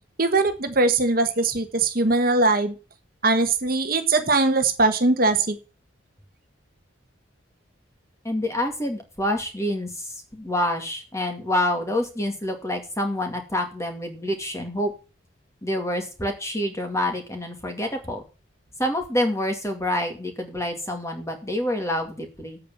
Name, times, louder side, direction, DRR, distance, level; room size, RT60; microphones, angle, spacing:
voice 1, 0.2-2.7 3.2-5.6, right 3 dB, 45° right, 7 dB, 1.3 m, -21 dB
voice 2, 8.2-14.9 15.6-18.2 18.8-22.6, left 1 dB, 15° left, 5 dB, 2.2 m, -27 dB
8.5 x 7.2 x 7.2 m, 0.33 s
head